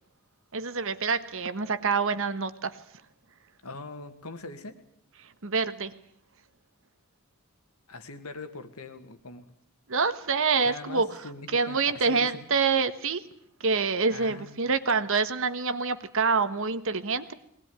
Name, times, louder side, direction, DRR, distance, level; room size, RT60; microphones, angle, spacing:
voice 1, 0.5-2.8 5.4-5.9 9.9-13.2 13.6-17.3, right 4 dB, 65° right, 12 dB, 1.4 m, -26 dB
voice 2, 3.6-4.8 7.9-9.5 10.6-12.4 14.1-14.6, left 3 dB, 85° left, 8 dB, 2.3 m, -42 dB
21.5 x 19.5 x 9.7 m, 0.67 s
head